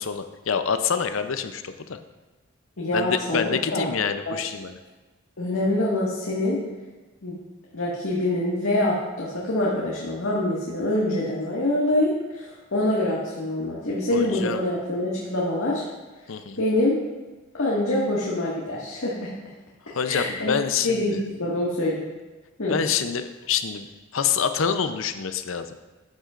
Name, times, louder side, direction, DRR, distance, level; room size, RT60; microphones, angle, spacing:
voice 1, 0.0-2.0 2.9-4.8 14.1-14.6 16.3-16.6 19.9-21.0 22.7-23.9 24.1-25.7, left 6 dB, 70° left, 9 dB, 0.6 m, -26 dB
voice 2, 2.8-3.9 4.3-4.4 5.4-6.6 7.2-7.4 7.7-15.8 16.6-17.0 17.5-19.3 20.1-20.5 20.8-22.0 22.6-22.8, left 1 dB, 90° left, -6 dB, 1.8 m, -25 dB
13.0 x 8.3 x 2.5 m, 1.2 s
head